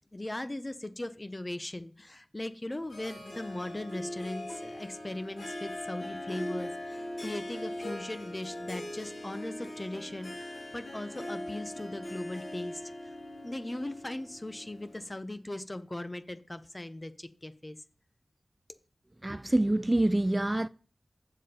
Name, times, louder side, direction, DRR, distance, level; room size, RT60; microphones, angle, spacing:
voice 1, 0.1-13.2 13.4-17.8, left 1 dB, 25° left, 0.9 m, -39 dB
Harp, 2.9-15.1, left 1 dB, 80° left, 3.2 m, -41 dB
voice 2, 19.2-20.7, right 1 dB, 25° right, 0.3 m, -26 dB
8.6 x 7.3 x 4.3 m
wide cardioid pair, 60°, 0 cm